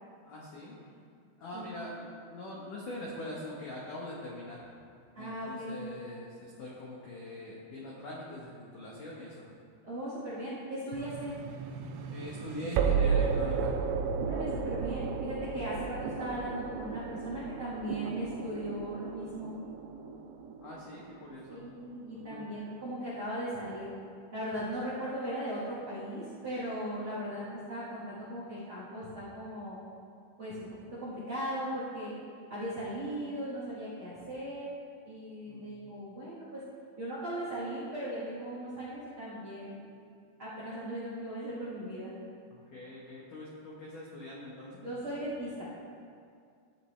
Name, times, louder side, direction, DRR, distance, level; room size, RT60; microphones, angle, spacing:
voice 1, 0.3-0.9 1.4-2.0 2.3-4.7 5.2-9.5 12.1-13.8 15.7-15.8 20.6-21.7 22.1-22.5 35.5-35.8 42.5-44.9, left 1 dB, 90° left, -5 dB, 1.8 m, -43 dB
voice 2, 5.1-5.7 9.8-11.3 14.2-19.5 21.5-23.9 24.3-29.8 30.4-32.1 32.5-34.7 35.0-36.6 37.0-39.8 40.4-42.1 44.8-45.6, right 1 dB, 50° right, -10 dB, 1.5 m, -38 dB
sound 1, 10.9-22.0, right 6 dB, 85° right, 2.4 m, -34 dB
13.5 x 8.9 x 3.3 m, 2.3 s
omnidirectional pair, 5.7 m